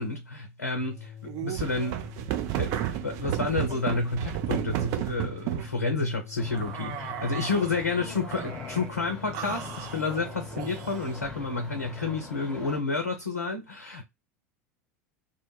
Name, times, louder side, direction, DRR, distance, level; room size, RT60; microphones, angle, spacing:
voice 1, 0.0-2.0 2.6-14.0, left 3 dB, 85° left, 0.5 m, -30 dB
sound 1, 0.8-12.2, left 9 dB, 35° left, 0.6 m, -45 dB
sound 2, 1.3-5.7 6.5-7.8 8.3-8.9 9.3-11.2, right 14 dB, 45° right, 0.4 m, -33 dB
sound 3, 6.4-12.8, left 3 dB, 10° left, 0.9 m, -43 dB
2.1 x 2.1 x 3.0 m
figure-of-eight pair, 80°, 8 cm